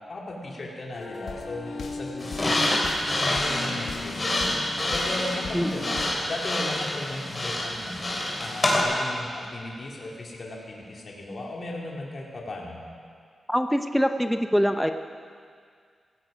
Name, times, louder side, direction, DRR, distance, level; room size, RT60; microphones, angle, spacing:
voice 1, 0.1-4.6 4.9-6.0 6.3-12.8, left 2 dB, 55° left, -2 dB, 2.6 m, -36 dB
sound 1, 0.9-6.1, left 3 dB, 85° left, 1.6 m, -37 dB
sound 2, 2.2-8.8, left 1 dB, 30° left, 3.4 m, -27 dB
voice 2, 13.5-14.9, equal, ahead, 6 dB, 0.7 m, -23 dB
16.5 x 15.5 x 5.1 m, 2.1 s
cardioid pair, 80°, 0 cm